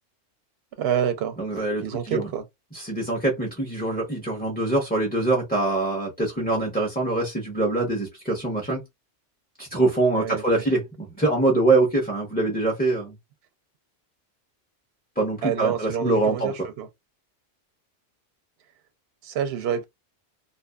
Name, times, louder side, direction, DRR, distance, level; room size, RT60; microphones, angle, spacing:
voice 1, 0.8-1.4 1.8-2.4 10.2-10.4 15.4-16.9 19.2-19.8, right 8 dB, 65° right, 0.7 m, -27 dB
voice 2, 1.4-2.3 2.7-8.8 9.6-13.1 15.2-16.5, right 2 dB, 10° left, 0.6 m, -24 dB
2.6 x 2.5 x 2.2 m
omnidirectional pair, 1.2 m